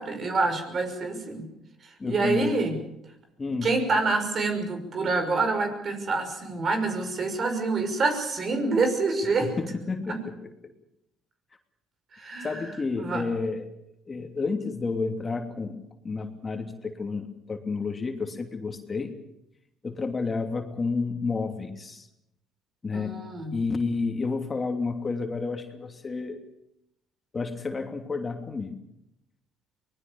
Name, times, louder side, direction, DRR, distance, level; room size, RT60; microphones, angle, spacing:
voice 1, 0.0-1.5 1.8-2.8 3.6-9.5 10.1-10.2 12.1-12.6 13.0-13.2 22.9-23.6, right 3 dB, 45° right, 7 dB, 6.0 m, -27 dB
voice 2, 2.0-2.6 3.4-3.7 9.4-10.5 12.4-13.7 14.1-19.1 19.8-22.1 22.8-23.2 23.5-26.4 27.3-28.8, left 4 dB, 30° left, 5 dB, 2.9 m, -30 dB
24.0 x 20.0 x 7.1 m, 0.81 s
supercardioid pair, 70°, 0 cm